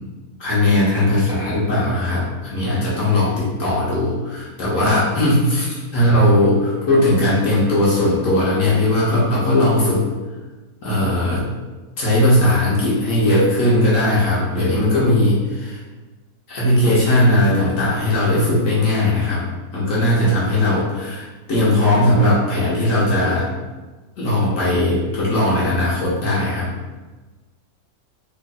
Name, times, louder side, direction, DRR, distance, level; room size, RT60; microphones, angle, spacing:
voice 1, 0.4-10.0 10.8-11.4 12.0-15.8 16.5-19.4 19.7-23.5 24.2-26.7, left 1 dB, 60° left, -7 dB, 1.2 m, -18 dB
3.8 x 3.1 x 2.3 m, 1.2 s
omnidirectional pair, 1.6 m